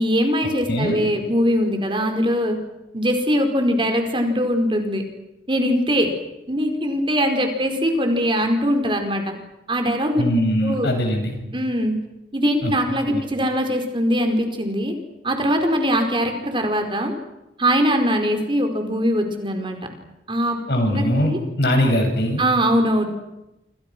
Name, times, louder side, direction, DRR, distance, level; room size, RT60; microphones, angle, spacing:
voice 1, 0.0-2.6 2.9-5.0 5.5-6.1 6.5-9.3 9.7-10.3 10.6-10.9 11.5-11.9 12.3-14.9 15.2-17.1 17.6-19.8 20.3-20.6 20.9-21.4 22.4-23.1, equal, 30° right, 5 dB, 4.7 m, -21 dB
voice 2, 0.7-1.0 10.2-11.4 12.6-12.7 13.1-13.2 20.7-22.4, equal, 65° left, 4 dB, 7.4 m, -21 dB
28.5 x 27.5 x 6.2 m, 0.91 s
head